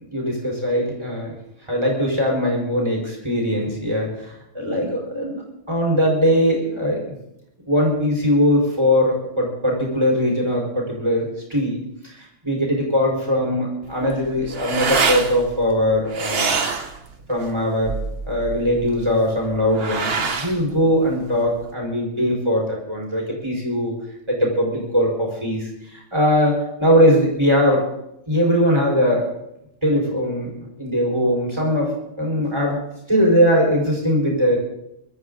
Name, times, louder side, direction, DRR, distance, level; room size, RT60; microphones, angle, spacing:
voice 1, 0.1-1.3 1.7-5.4 5.7-7.0 7.6-11.8 12.0-16.5 17.3-17.9 18.3-23.9 24.3-27.8 28.3-29.3 29.8-30.5 30.8-31.9 32.2-32.8 33.1-34.6, equal, 20° right, -3 dB, 4.8 m, -20 dB
sound 1, 13.8-21.7, right 5 dB, 50° right, 1.4 m, -27 dB
24.0 x 12.5 x 3.9 m, 0.81 s
omnidirectional pair, 1.3 m